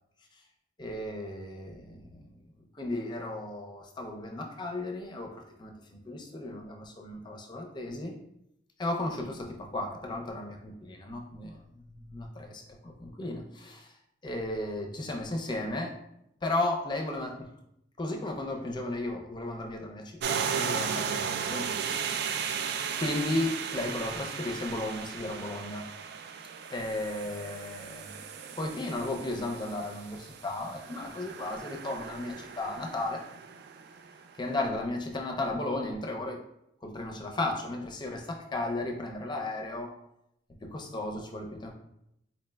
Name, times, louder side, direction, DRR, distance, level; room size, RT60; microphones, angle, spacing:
voice 1, 0.8-2.3 2.7-5.3 5.6-8.2 8.8-11.6 12.1-13.9 14.2-16.0 16.4-17.5 18.0-21.7 23.0-25.9 26.7-28.2 28.6-33.2 34.4-36.4 36.8-39.9 40.6-41.7, left 2 dB, 25° left, 2 dB, 0.4 m, -34 dB
sound 1, 20.2-34.3, right 7 dB, 60° right, 0.3 m, -36 dB
4.2 x 3.1 x 2.2 m, 0.79 s
head